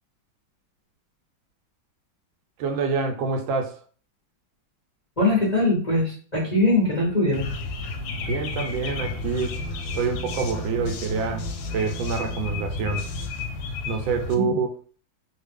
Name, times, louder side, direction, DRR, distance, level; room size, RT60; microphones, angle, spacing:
voice 1, 2.6-3.8 8.2-9.6 9.9-13.1 13.9-14.7, right 4 dB, 75° right, 4 dB, 1.3 m, -27 dB
voice 2, 5.2-7.5 14.3-14.6, left 2 dB, 30° left, -5 dB, 0.7 m, -22 dB
sound 1, 7.0-13.3, right 3 dB, 60° left, 1.0 m, -42 dB
sound 2, 7.3-14.3, left 3 dB, 75° left, 1.3 m, -32 dB
3.2 x 2.3 x 3.4 m, 0.41 s
omnidirectional pair, 2.2 m